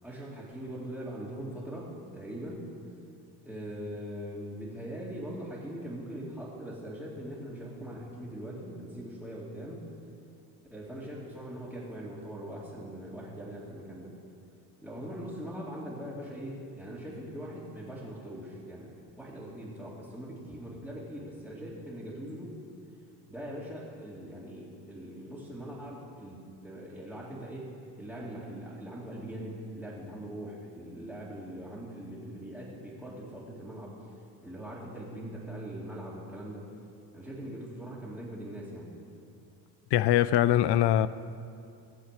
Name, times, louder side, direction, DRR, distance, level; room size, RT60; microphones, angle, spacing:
voice 1, 0.0-2.7 3.4-9.8 10.7-14.1 14.8-18.9 19.2-22.6 23.3-34.0 34.4-36.7 37.1-39.0, right 1 dB, ahead, 2.5 m, -41 dB
voice 2, 39.9-41.1, left 12 dB, 70° left, 0.5 m, -22 dB
18.5 x 7.6 x 6.7 m
cardioid pair, 120°, 44 cm